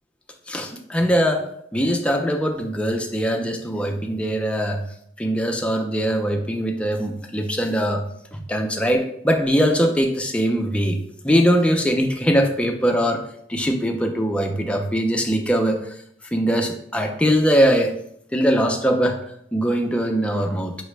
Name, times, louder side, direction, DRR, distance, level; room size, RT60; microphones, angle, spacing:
voice 1, 0.5-4.8 5.2-8.0 8.3-11.0 11.2-13.2 13.5-15.8 16.3-17.9 18.3-19.2 19.5-20.7, equal, 5° left, 3 dB, 0.4 m, -21 dB
4.7 x 2.1 x 3.2 m, 0.69 s
head